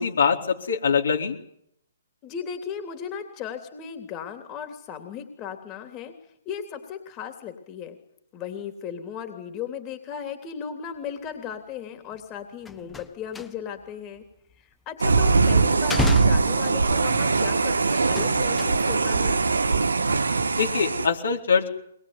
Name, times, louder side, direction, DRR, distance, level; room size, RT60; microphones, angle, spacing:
voice 1, 0.0-1.3 20.6-21.7, left 6 dB, 75° left, 2 dB, 4.1 m, -23 dB
voice 2, 2.2-6.2 6.4-8.0 8.3-14.2 14.6-19.4, left 8 dB, 25° left, 7 dB, 3.2 m, -36 dB
sound 1, 12.1-12.3 12.5-13.9 14.1-15.3 15.7-17.2 17.9-19.1 19.4-19.9 20.2-20.4, left 5 dB, 10° left, 1.3 m, -33 dB
sound 2, 15.0-21.1, right 4 dB, 90° right, 1.5 m, -21 dB
22.0 x 21.0 x 9.6 m, 0.75 s
hypercardioid pair, 140°, 0 cm